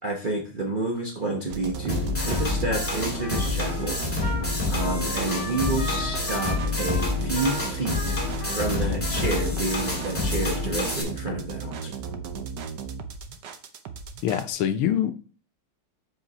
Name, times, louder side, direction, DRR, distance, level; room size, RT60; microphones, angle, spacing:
voice 1, 0.0-4.0 4.7-8.2 8.4-11.9, right 2 dB, 40° right, 0.7 m, -29 dB
sound 1, 1.5-14.5, right 6 dB, 65° right, 1.2 m, -35 dB
sound 2, 1.9-11.0, left 3 dB, 5° left, 1.7 m, -28 dB
Trumpet, 2.2-10.5, left 1 dB, 45° left, 2.9 m, -38 dB
voice 2, 14.2-15.1, left 10 dB, 85° left, 1.6 m, -24 dB
7.5 x 4.7 x 4.1 m
omnidirectional pair, 2.3 m